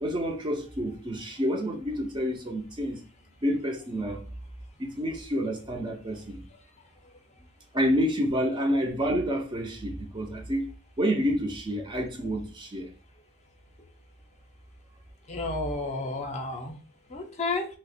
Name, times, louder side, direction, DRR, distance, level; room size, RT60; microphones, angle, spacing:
voice 1, 0.0-3.0 3.4-4.2 4.8-6.4 7.7-10.7 11.0-12.9, equal, 20° right, 0.4 m, -28 dB
voice 2, 15.3-16.8 17.1-17.7, left 3 dB, 30° left, 0.6 m, -31 dB
2.8 x 2.1 x 4.1 m
head